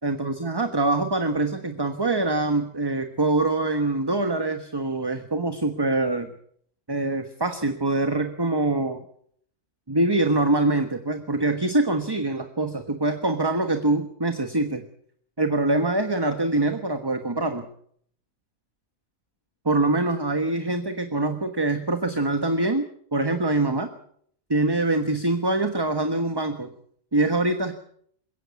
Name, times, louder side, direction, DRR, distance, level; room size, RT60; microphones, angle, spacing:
voice 1, 0.0-6.3 6.9-9.0 9.9-14.8 15.4-17.7 19.6-23.9 24.5-26.7 27.1-27.7, right 2 dB, 15° right, 7 dB, 1.2 m, -24 dB
22.0 x 17.0 x 8.3 m, 0.65 s
omnidirectional pair, 1.6 m